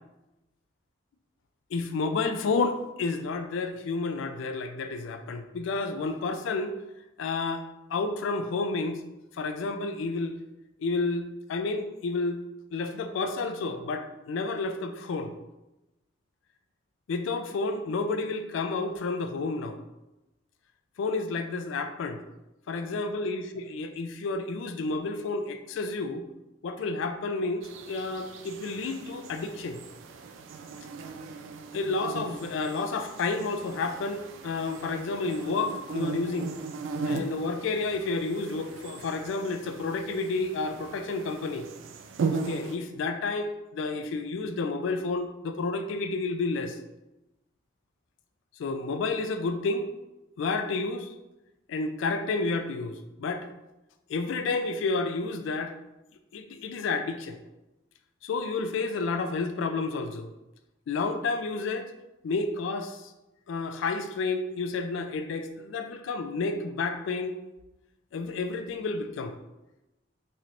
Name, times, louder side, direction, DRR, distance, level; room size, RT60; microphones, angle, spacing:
voice 1, 1.7-6.8 7.2-9.0 9.3-10.3 10.8-12.4 12.7-15.3 17.1-19.8 21.0-22.2 22.7-26.3 26.6-29.8 31.7-36.5 37.0-41.7 42.3-46.8 48.6-49.9 50.4-51.1 51.7-53.5 54.1-55.7 56.3-57.4 58.2-60.3 60.9-61.9 62.2-63.1 63.5-67.4 68.1-69.4, left 3 dB, 80° left, 8 dB, 0.3 m, -30 dB
sound 1, 27.6-42.8, right 4 dB, 80° right, 0.3 m, -38 dB
3.1 x 2.5 x 2.8 m, 0.97 s
head